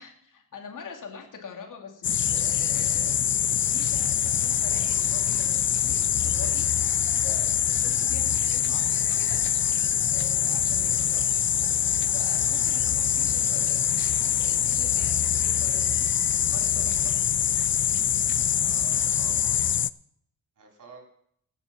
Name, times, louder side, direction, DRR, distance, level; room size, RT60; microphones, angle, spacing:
voice 1, 0.0-3.2 3.5-6.7 7.2-9.4 10.1-11.4 12.1-16.1 16.5-17.2, left 6 dB, 60° left, 3 dB, 2.9 m, -43 dB
sound 1, 2.0-19.9, left 9 dB, 35° left, 0.4 m, -24 dB
voice 2, 18.6-19.9 20.6-21.0, right 4 dB, 60° right, 1 dB, 4.3 m, -49 dB
16.0 x 7.1 x 6.0 m, 0.68 s
cardioid pair, 85°, 35 cm